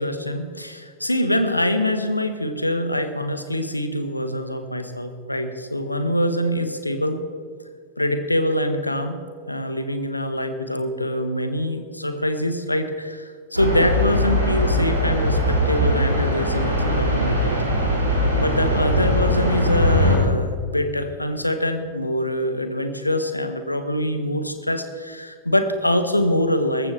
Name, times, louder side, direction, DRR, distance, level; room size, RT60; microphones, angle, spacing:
voice 1, 0.0-7.2 8.0-9.2 9.5-17.5 18.1-26.9, left 1 dB, 85° left, 9 dB, 1.1 m, -24 dB
sound 1, 13.5-20.2, equal, 80° right, 3.4 m, -21 dB
19.0 x 15.0 x 3.3 m, 2.2 s
figure-of-eight pair, 90°, 0 cm